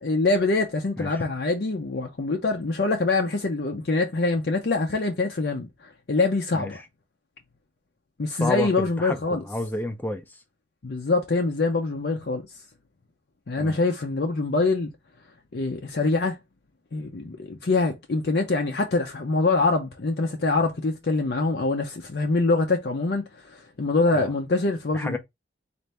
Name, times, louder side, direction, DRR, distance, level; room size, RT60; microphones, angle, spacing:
voice 1, 0.0-5.7 6.1-6.8 8.2-9.4 10.8-12.4 13.5-14.9 15.5-16.4 16.9-23.2 23.5-25.2, left 3 dB, 60° left, 0.6 m, -24 dB
voice 2, 6.5-6.9 8.3-10.4 13.6-13.8 24.1-24.3 24.9-25.2, left 2 dB, 10° left, 0.5 m, -31 dB
4.1 x 2.6 x 3.3 m
head